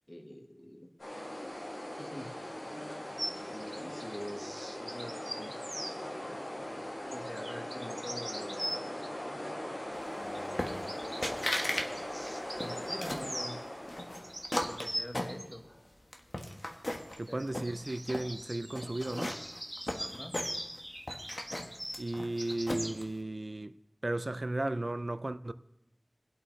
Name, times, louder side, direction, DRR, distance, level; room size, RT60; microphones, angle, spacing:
voice 1, 0.1-0.9 2.0-2.3 3.3-4.5 4.8-5.6 7.1-8.8 10.1-11.0 11.6-11.9 12.6-13.6 14.6-15.7 17.3-17.8 19.9-20.4, equal, 25° left, 1.4 m, -45 dB
sound 1, 1.0-14.4, left 1 dB, 90° left, 4.9 m, -40 dB
sound 2, 3.2-6.0 7.1-9.1 10.3-13.6 14.0-15.6 16.9-23.0, equal, 10° right, 1.0 m, -42 dB
sound 3, 10.6-11.0 11.2-11.9 12.2-13.3 13.9-15.8 16.1-17.2 17.5-18.3 18.7-20.8 21.1-23.0, left 1 dB, 55° left, 1.3 m, -36 dB
voice 2, 17.2-19.4 22.0-23.7 24.0-25.5, right 2 dB, 55° right, 0.4 m, -35 dB
23.5 x 8.3 x 3.2 m
wide cardioid pair, 50°, 0 cm